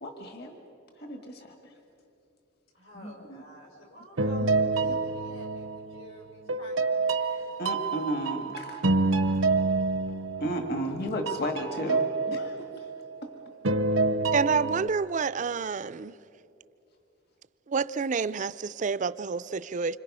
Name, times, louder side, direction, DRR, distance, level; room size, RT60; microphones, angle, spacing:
voice 1, 0.0-0.6 1.0-1.7 2.9-3.4 4.9-5.0 7.6-8.8 9.2-9.4 10.4-12.9, equal, 55° left, 1.8 m, -34 dB
voice 2, 2.7-7.5 13.5-13.6, left 1 dB, 80° left, 5.9 m, -50 dB
sound 1, 4.2-6.1 6.5-11.0 11.3-13.2 13.6-14.9, right 3 dB, 85° right, 0.9 m, -27 dB
voice 3, 14.3-16.1 17.7-20.0, right 5 dB, 40° right, 0.4 m, -28 dB
26.5 x 25.5 x 5.5 m
head